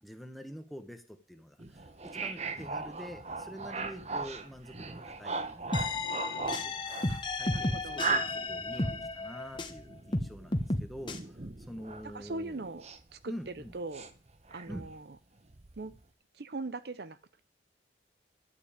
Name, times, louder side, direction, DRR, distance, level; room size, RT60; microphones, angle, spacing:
voice 1, 0.0-6.0 6.6-11.2 11.7-12.6 13.3-13.7 14.7-14.9, equal, ahead, 7 dB, 1.1 m, -46 dB
sound 1, 1.6-13.2 13.5-15.0 15.5-16.0, right 4 dB, 35° right, 0.9 m, -39 dB
sound 2, 5.7-9.8 10.1-11.2, left 2 dB, 25° left, 1.2 m, -33 dB
voice 2, 7.5-8.0 12.0-12.9 13.1-14.1 14.5-15.2 15.8-15.9 16.3-17.4, right 3 dB, 60° right, 14 dB, 0.6 m, -40 dB
12.0 x 5.3 x 8.7 m, 0.36 s
head